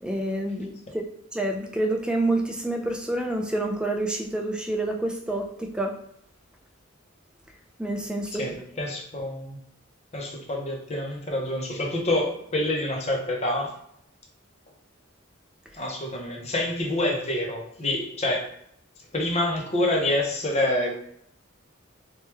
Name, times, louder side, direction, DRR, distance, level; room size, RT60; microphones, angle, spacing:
voice 1, 0.0-1.0 1.3-5.9 7.8-8.4, right 1 dB, 5° right, 2 dB, 0.3 m, -28 dB
voice 2, 8.3-9.6 10.1-13.7 15.7-18.5 19.1-21.0, left 1 dB, 35° left, 0 dB, 0.6 m, -27 dB
3.0 x 2.2 x 3.2 m, 0.71 s
head